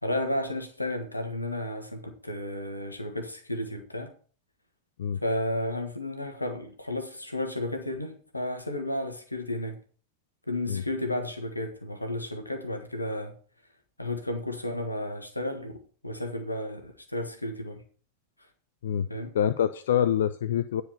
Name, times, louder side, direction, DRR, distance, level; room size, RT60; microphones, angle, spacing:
voice 1, 0.0-4.1 5.2-9.8 10.5-13.3 14.0-15.8 16.0-17.8 19.1-19.3, left 1 dB, 85° left, 1.4 m, -32 dB
voice 2, 19.3-20.8, left 9 dB, 60° left, 0.4 m, -25 dB
10.0 x 4.7 x 6.9 m
figure-of-eight pair, 90°, 0 cm